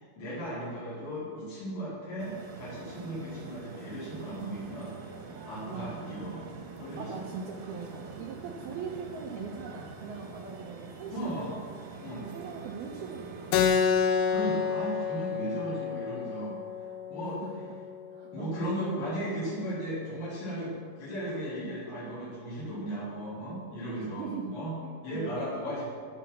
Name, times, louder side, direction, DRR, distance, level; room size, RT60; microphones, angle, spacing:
voice 1, 0.2-4.9 5.5-6.5 6.8-7.3 11.1-11.5 12.0-12.3 14.3-16.6 17.1-17.4 18.3-24.7 25.0-25.8, right 1 dB, 65° left, -10 dB, 6.5 m, -36 dB
sound 1, 2.2-13.7, right 4 dB, 60° right, 2.6 m, -45 dB
voice 2, 5.7-6.1 7.0-11.8 12.3-13.7 15.5-15.8 17.3-17.8 18.1-18.6 21.6-21.8 23.9-25.6, right 5 dB, 75° right, -1 dB, 2.3 m, -41 dB
Keyboard (musical), 13.5-18.6, left 7 dB, 85° left, 3.3 m, -29 dB
21.0 x 7.1 x 6.3 m, 2.2 s
omnidirectional pair, 5.6 m